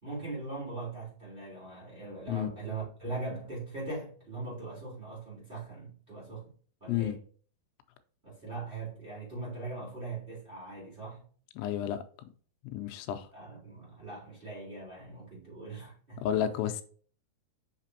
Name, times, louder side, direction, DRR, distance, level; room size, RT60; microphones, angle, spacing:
voice 1, 0.0-6.5 6.8-7.2 8.2-11.2 13.3-16.2, right 3 dB, 15° right, 2.9 m, -40 dB
voice 2, 11.6-12.0 12.6-13.3 16.2-16.8, left 10 dB, 90° left, 3.0 m, -31 dB
6.5 x 5.8 x 2.7 m
omnidirectional pair, 5.3 m